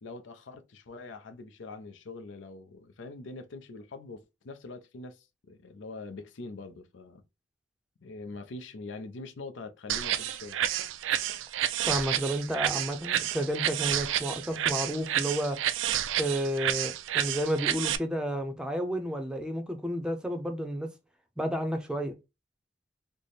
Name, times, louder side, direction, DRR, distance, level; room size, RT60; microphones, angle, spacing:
voice 1, 0.0-7.2 8.0-10.6, left 3 dB, 75° left, 0.5 m, -43 dB
sound 1, 9.9-18.0, right 11 dB, 85° right, 0.3 m, -30 dB
voice 2, 11.9-15.6 16.2-20.9 21.4-22.1, equal, 5° right, 0.5 m, -31 dB
3.3 x 2.1 x 3.9 m
head